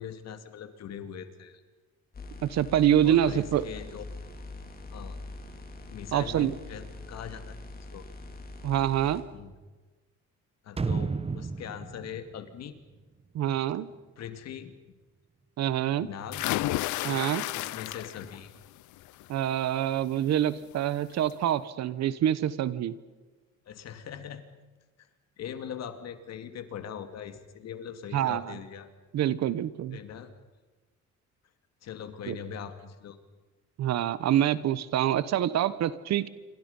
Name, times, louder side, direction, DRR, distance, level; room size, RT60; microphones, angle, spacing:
voice 1, 0.0-1.6 3.0-4.1 4.9-5.2 5.9-7.6 7.9-8.0 9.3-9.5 10.6-12.8 14.2-14.7 16.0-16.5 17.0-17.2 17.5-18.5 23.7-24.4 25.0-25.1 25.4-28.9 29.9-30.3 31.8-33.2, left 8 dB, 60° left, 9 dB, 2.5 m, -41 dB
sound 1, 2.1-9.2, left 2 dB, 30° left, 4.1 m, -43 dB
voice 2, 2.4-3.6 6.1-6.5 8.6-9.2 13.3-13.9 15.6-16.1 17.0-17.4 19.3-22.9 28.1-28.6 29.1-30.0 32.3-32.4 33.8-36.3, right 11 dB, 65° right, 16 dB, 1.2 m, -26 dB
sound 2, 10.8-13.6 13.9-14.0, right 4 dB, 20° right, 1.0 m, -33 dB
sound 3, 16.3-18.4 18.8-19.2 20.6-20.7 21.1-21.2, left 16 dB, 85° left, 0.7 m, -31 dB
28.0 x 25.5 x 5.5 m, 1.3 s
cardioid pair, 120°, 29 cm